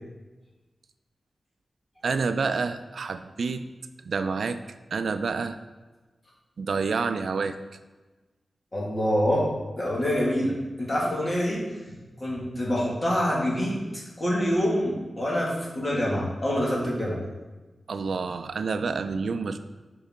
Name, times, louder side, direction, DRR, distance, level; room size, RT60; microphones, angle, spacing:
voice 1, 2.0-3.6 4.0-4.6 4.9-5.6 6.6-7.6 17.9-19.6, right 4 dB, 70° right, 10 dB, 0.4 m, -28 dB
voice 2, 8.7-9.4 9.8-10.5 10.8-11.6 12.2-13.7 14.2-17.2, equal, 30° left, -5 dB, 2.0 m, -25 dB
6.7 x 5.4 x 3.7 m, 1.2 s
wide cardioid pair, 140°, 0 cm